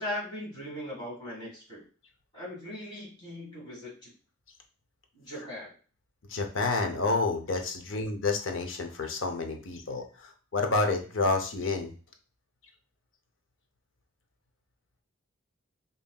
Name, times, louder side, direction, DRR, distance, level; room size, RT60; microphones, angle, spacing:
voice 1, 0.0-1.8 2.3-4.1 5.1-5.7, left 1 dB, 20° left, -5 dB, 1.8 m, -39 dB
voice 2, 6.3-11.9, left 3 dB, 70° left, 4 dB, 0.7 m, -29 dB
5.3 x 2.6 x 2.3 m, 0.38 s
head